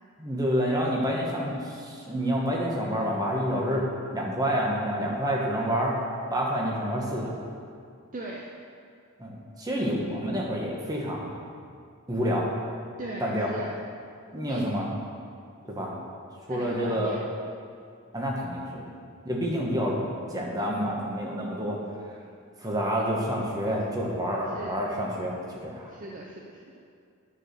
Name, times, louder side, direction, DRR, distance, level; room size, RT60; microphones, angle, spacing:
voice 1, 0.2-3.8 4.1-6.0 6.3-7.4 9.2-11.3 12.1-12.5 13.2-13.5 14.3-14.9 15.7-15.9 16.5-17.2 18.1-18.8 19.2-20.0 20.3-21.8 22.6-25.9, equal, 15° right, -3 dB, 1.3 m, -28 dB
voice 2, 8.1-8.5 13.0-13.8 14.5-14.8 16.5-17.3 21.6-21.7 24.5-24.8 25.9-26.6, right 2 dB, 35° right, -1 dB, 0.6 m, -39 dB
9.8 x 4.7 x 6.7 m, 2.3 s
head